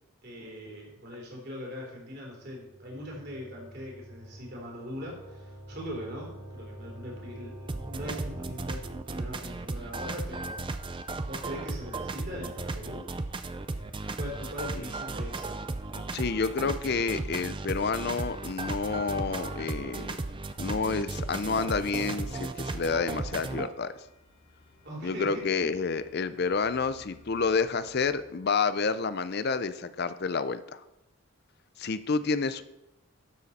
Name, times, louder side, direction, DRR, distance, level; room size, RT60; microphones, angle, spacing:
voice 1, 0.2-10.7 11.3-13.1 14.2-15.6 24.8-25.7, equal, 45° right, -2 dB, 3.3 m, -41 dB
sound 1, 2.4-9.2, right 1 dB, 5° right, 2.4 m, -47 dB
sound 2, 7.7-23.7, right 3 dB, 20° right, 0.4 m, -35 dB
sound 3, 13.5-28.1, left 2 dB, 75° left, 4.0 m, -61 dB
voice 2, 15.9-20.1 20.6-23.9 25.0-30.8 31.8-32.6, left 4 dB, 45° left, 13 dB, 0.5 m, -29 dB
12.5 x 6.7 x 4.2 m, 0.93 s
head